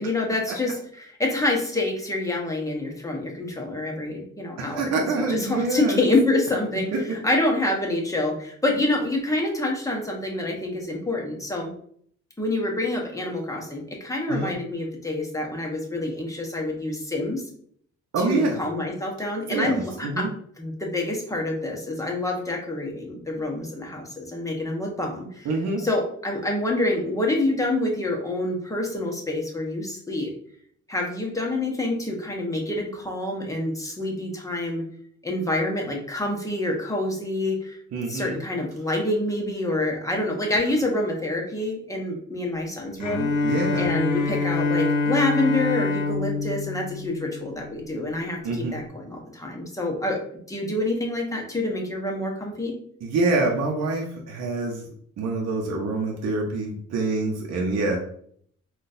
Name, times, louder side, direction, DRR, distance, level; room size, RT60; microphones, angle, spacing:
voice 1, 0.0-4.9 5.1-11.7 12.4-17.4 18.2-20.3 20.6-25.5 25.8-30.3 30.9-34.8 35.2-37.8 38.1-50.2 50.5-52.7, left 2 dB, 10° left, 0 dB, 0.8 m, -27 dB
voice 2, 4.7-6.0 14.3-14.5 18.1-18.6 19.5-20.3 25.4-25.8 37.9-38.4 43.0-43.1 43.4-43.9 48.4-48.8 53.0-54.9 55.2-58.0, right 3 dB, 60° right, 0 dB, 0.7 m, -26 dB
Bowed string instrument, 43.0-47.9, left 3 dB, 90° left, 0.8 m, -25 dB
3.8 x 2.4 x 2.5 m, 0.62 s
cardioid pair, 90°, 30 cm